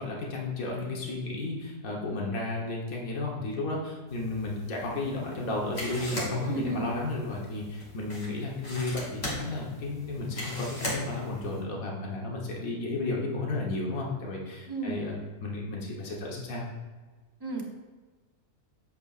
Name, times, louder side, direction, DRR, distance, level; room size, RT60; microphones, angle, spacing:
voice 1, 0.0-15.2 15.4-16.6, left 2 dB, 65° left, -2 dB, 1.7 m, -33 dB
sound 1, 4.1-11.6, left 1 dB, 45° left, 2.3 m, -39 dB
voice 2, 6.5-6.9 14.7-15.0 17.4-17.6, right 3 dB, 20° right, -1 dB, 0.9 m, -32 dB
8.1 x 7.8 x 2.5 m, 1.3 s
omnidirectional pair, 1.6 m